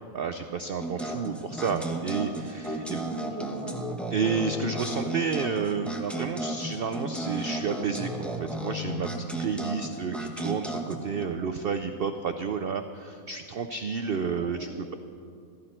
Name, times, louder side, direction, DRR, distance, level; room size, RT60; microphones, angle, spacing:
voice 1, 0.1-3.0 4.1-14.9, right 5 dB, 85° right, 8 dB, 0.5 m, -31 dB
sound 1, 0.8-11.2, right 1 dB, ahead, 0.8 m, -34 dB
voice 2, 2.8-3.9 9.8-10.4 11.4-11.5 14.4-14.9, right 3 dB, 30° right, 5 dB, 0.9 m, -41 dB
15.0 x 14.0 x 4.4 m, 2.4 s
omnidirectional pair, 1.6 m